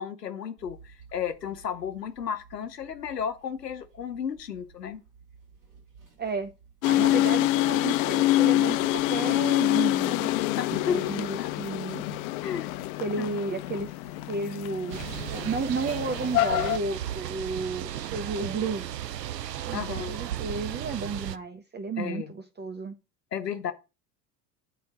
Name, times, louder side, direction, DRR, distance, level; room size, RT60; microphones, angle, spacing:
voice 1, 0.0-5.0 10.6-11.5 12.4-12.7 13.2-13.3 19.7-20.1 22.0-22.3 23.3-23.7, left 8 dB, 90° left, 0.8 m, -33 dB
sound 1, 0.6-20.3, right 3 dB, 70° right, 4.6 m, -53 dB
voice 2, 6.2-6.5 6.9-10.3 10.8-12.0 13.0-13.9 14.3-15.0 15.3-18.8 19.7-19.8 20.1-22.9, right 4 dB, 20° right, 0.8 m, -32 dB
sound 2, 6.8-16.8, left 16 dB, 60° left, 0.5 m, -26 dB
sound 3, 14.9-21.4, right 11 dB, 90° right, 0.5 m, -35 dB
8.3 x 4.4 x 5.8 m
figure-of-eight pair, 70°, 48 cm